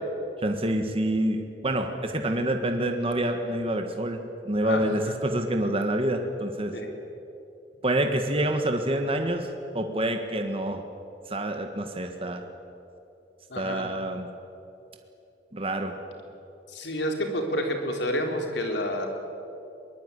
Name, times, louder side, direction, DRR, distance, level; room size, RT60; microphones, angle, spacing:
voice 1, 0.4-6.8 7.8-9.5 9.7-10.8 11.3-12.4 13.6-14.3 15.5-16.0, right 1 dB, 30° right, 5 dB, 1.6 m, -27 dB
voice 2, 4.6-5.2 6.7-6.9 13.5-13.9 16.7-19.1, equal, 75° left, 3 dB, 4.0 m, -29 dB
22.5 x 20.0 x 9.8 m, 2.8 s
head